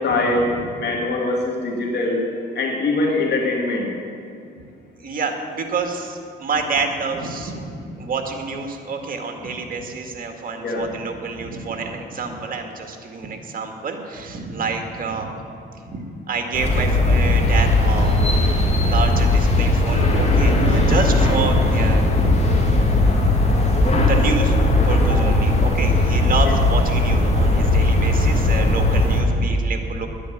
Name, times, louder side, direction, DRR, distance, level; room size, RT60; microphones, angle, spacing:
voice 1, 0.0-2.3 2.5-3.9 10.6-10.8 25.1-25.2 26.5-26.6, left 2 dB, 60° left, -1 dB, 2.4 m, -22 dB
voice 2, 5.0-15.3 15.9-18.2 18.8-22.3 23.1-23.3 23.9-24.5 24.8-30.1, right 4 dB, 45° right, 4 dB, 2.1 m, -28 dB
sound 1, 16.5-29.2, left 2 dB, 35° left, 2.8 m, -18 dB
10.5 x 9.9 x 9.3 m, 2.5 s
cardioid pair, 90°, 20 cm